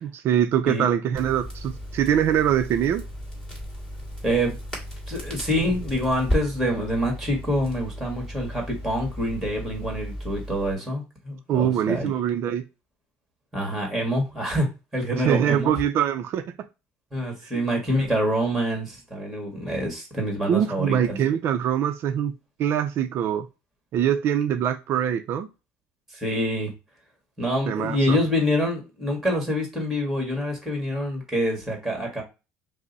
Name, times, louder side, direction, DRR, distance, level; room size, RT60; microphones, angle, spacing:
voice 1, 0.0-3.0 11.5-12.6 15.2-16.5 17.5-17.6 20.5-22.3 22.6-23.5 23.9-25.5 27.7-28.2, right 9 dB, 50° right, 0.4 m, -23 dB
Crackle, 1.1-10.7, equal, 15° left, 2.0 m, -34 dB
voice 2, 4.2-4.6 5.1-12.1 13.5-15.7 17.1-21.2 26.1-26.7 27.4-32.2, equal, 5° right, 1.7 m, -26 dB
5.2 x 2.0 x 4.0 m
cardioid pair, 150°, 5 cm